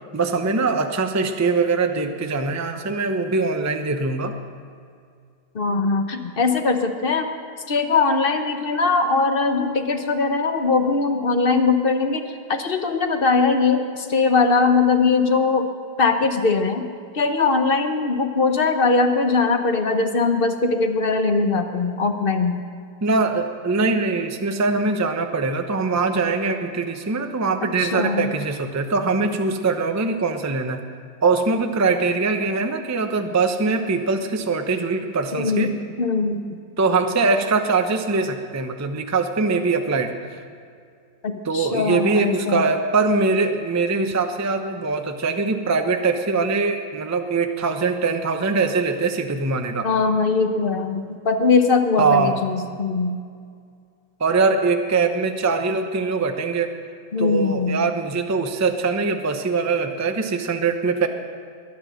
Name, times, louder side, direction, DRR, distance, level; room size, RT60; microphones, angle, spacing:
voice 1, 0.1-4.3 23.0-30.8 31.2-35.7 36.8-40.4 41.4-49.9 52.0-52.4 54.2-56.8 57.2-61.1, right 4 dB, 25° right, 6 dB, 0.3 m, -22 dB
voice 2, 5.5-7.3 7.7-12.2 12.5-15.7 16.0-16.9 17.1-22.6 27.8-28.3 35.3-36.4 41.2-42.6 49.8-53.2 57.1-57.8, left 4 dB, 40° left, 7 dB, 0.9 m, -21 dB
22.0 x 9.7 x 6.4 m, 2.2 s
omnidirectional pair, 2.0 m